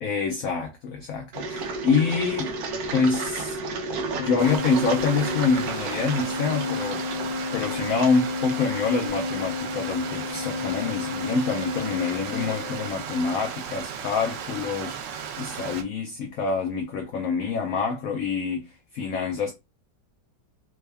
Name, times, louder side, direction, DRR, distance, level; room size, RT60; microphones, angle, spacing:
voice 1, 0.0-2.5 2.9-3.6 4.1-7.0 7.5-19.5, left 4 dB, 65° left, 0.9 m, -26 dB
Engine, 1.3-9.1, right 3 dB, 65° right, 1.2 m, -33 dB
sound 1, 4.2-12.9, left 5 dB, 85° left, 1.3 m, -33 dB
Stream, 4.4-15.8, right 7 dB, 90° right, 1.3 m, -35 dB
3.5 x 2.2 x 3.3 m
omnidirectional pair, 1.9 m